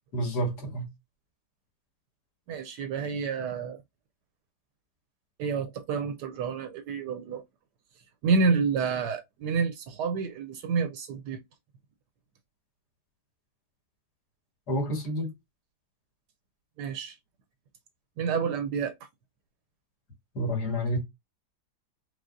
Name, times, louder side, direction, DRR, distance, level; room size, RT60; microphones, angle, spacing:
voice 1, 0.1-0.9 14.7-15.3 20.4-21.0, equal, 70° left, 2.3 m, -29 dB
voice 2, 2.5-3.8 5.4-7.4 8.2-11.4 16.8-17.2 18.2-19.0, right 5 dB, 80° right, 1.2 m, -29 dB
4.9 x 3.9 x 2.6 m
omnidirectional pair, 1.8 m